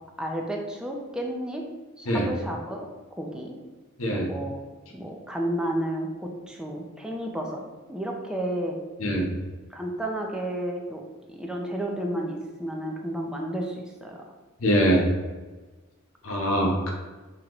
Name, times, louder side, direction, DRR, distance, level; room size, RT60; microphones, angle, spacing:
voice 1, 0.2-1.6 2.0-2.9 3.2-3.5 4.1-4.6 4.9-7.6 7.9-8.8 9.7-11.0 11.3-14.2 16.8-16.9, right 1 dB, 5° right, 0 dB, 0.4 m, -32 dB
voice 2, 4.0-4.3 9.0-9.3 14.6-15.1 16.2-16.9, equal, 70° left, -1 dB, 0.9 m, -23 dB
3.7 x 2.9 x 3.0 m, 1.3 s
head